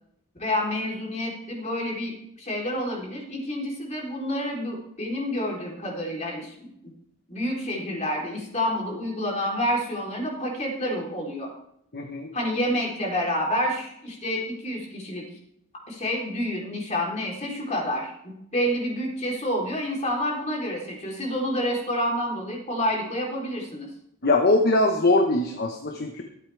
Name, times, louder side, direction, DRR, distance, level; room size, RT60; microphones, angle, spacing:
voice 1, 0.4-6.7 7.3-11.5 12.3-15.2 15.9-23.9, equal, 30° left, -1 dB, 3.9 m, -28 dB
voice 2, 11.9-12.3 24.2-26.2, left 2 dB, 45° left, 3 dB, 1.3 m, -22 dB
23.0 x 8.5 x 3.5 m, 0.75 s
head